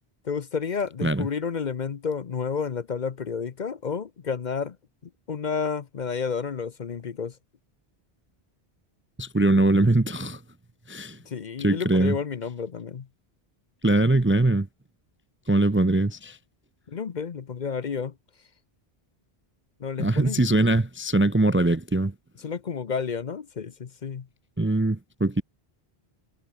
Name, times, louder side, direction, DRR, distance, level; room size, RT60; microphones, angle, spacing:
voice 1, 0.2-4.8 5.3-7.3 11.3-13.1 16.9-18.1 19.8-20.4 22.4-24.3, left 6 dB, 50° left, 0.8 m, -31 dB
voice 2, 9.2-10.4 10.9-11.2 11.6-12.2 13.8-14.7 15.5-16.4 20.0-22.1 24.6-25.4, right 2 dB, 15° right, 0.5 m, -22 dB
omnidirectional pair, 1.1 m